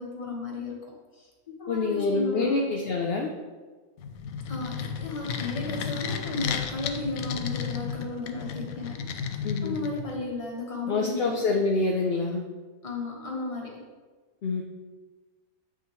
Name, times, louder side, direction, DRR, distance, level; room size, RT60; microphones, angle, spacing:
voice 1, 0.0-2.7 4.5-9.1 9.4-11.6 12.8-13.8, left 3 dB, 25° left, -2 dB, 1.2 m, -34 dB
voice 2, 1.7-3.3 9.4-9.7 10.9-12.4 14.4-14.6, left 3 dB, 60° left, 1 dB, 0.7 m, -26 dB
sound 1, 4.0-10.3, left 6 dB, 75° left, 1.0 m, -33 dB
7.9 x 5.8 x 3.1 m, 1.4 s
omnidirectional pair, 1.5 m